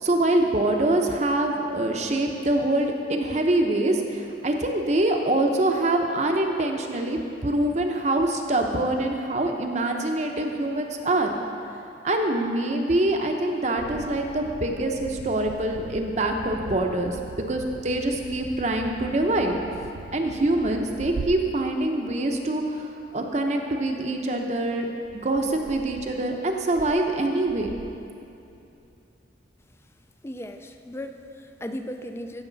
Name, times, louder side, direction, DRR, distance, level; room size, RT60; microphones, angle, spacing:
voice 1, 0.0-11.3 12.0-19.6 20.1-22.9 23.1-24.9 25.2-27.7, right 1 dB, 35° right, 3 dB, 0.7 m, -24 dB
sound 1, 13.8-22.7 23.1-23.5 23.7-23.8 25.0-28.8, right 4 dB, 70° right, 0.4 m, -41 dB
voice 2, 30.2-32.4, left 1 dB, 15° left, 7 dB, 0.3 m, -36 dB
16.5 x 6.6 x 4.0 m, 2.7 s
head